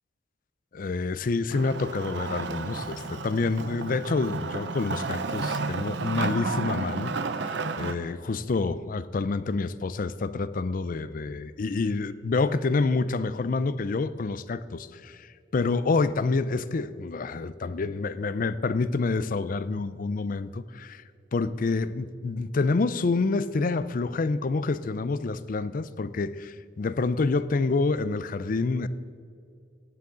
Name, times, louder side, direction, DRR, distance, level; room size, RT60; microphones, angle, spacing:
voice 1, 0.7-21.0 21.3-28.9, left 3 dB, 50° left, 15 dB, 0.5 m, -28 dB
Wood, 1.5-7.9, right 3 dB, 70° right, 0.6 m, -32 dB
17.0 x 10.0 x 3.9 m, 2.4 s
head